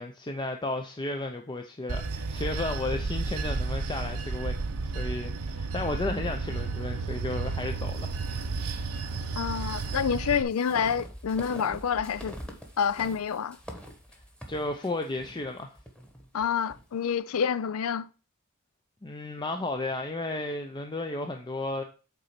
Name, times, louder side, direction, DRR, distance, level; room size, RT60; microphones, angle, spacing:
voice 1, 0.0-8.1 14.5-15.8 19.0-21.8, left 2 dB, 20° left, 0.6 m, -33 dB
Bell / Train, 1.9-10.4, right 3 dB, 75° right, 0.8 m, -32 dB
sound 1, 8.9-16.8, equal, 5° left, 1.3 m, -45 dB
voice 2, 9.4-12.3 12.8-13.6 16.3-18.1, left 7 dB, 70° left, 0.4 m, -28 dB
8.1 x 4.0 x 5.8 m
head